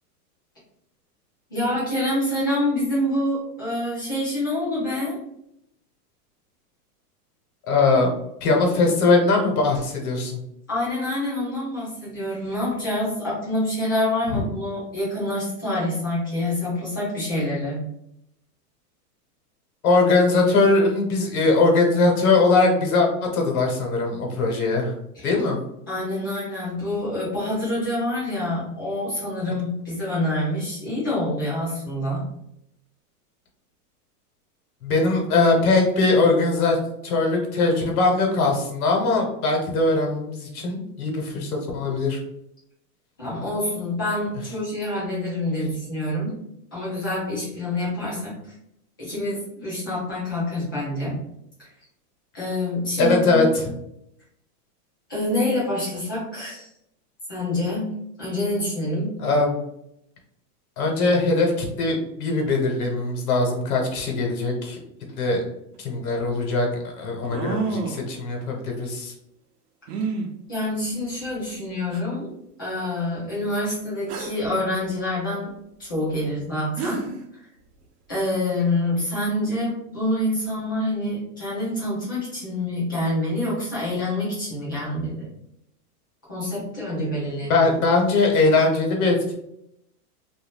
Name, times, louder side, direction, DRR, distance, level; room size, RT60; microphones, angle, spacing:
voice 1, 1.5-5.2 10.7-17.9 25.1-25.4 25.9-32.2 43.2-46.3 46.7-48.5 49.0-51.2 51.6-51.7 52.3-53.5 55.1-56.7 57.3-57.9 58.2-59.1 70.5-72.3 72.6-75.5 75.8-77.0 77.3-77.5 78.1-85.3 86.3-87.7, left 1 dB, 15° left, -8 dB, 0.3 m, -26 dB
voice 2, 7.7-8.1 8.4-10.4 19.8-24.9 25.2-25.6 34.8-36.8 37.0-42.2 53.0-53.6 59.2-59.6 60.8-64.8 65.2-65.4 65.8-66.7 67.0-69.1 87.2-89.3, left 3 dB, 65° left, 1 dB, 1.1 m, -21 dB
sound 1, 65.7-65.8 67.2-68.1 69.9-70.3 71.3-71.4 71.9-72.0 74.1-74.5 76.4-76.5 76.8-77.2, right 4 dB, 70° right, 0.7 m, -29 dB
2.6 x 2.3 x 3.3 m, 0.78 s
supercardioid pair, 165°, 47 cm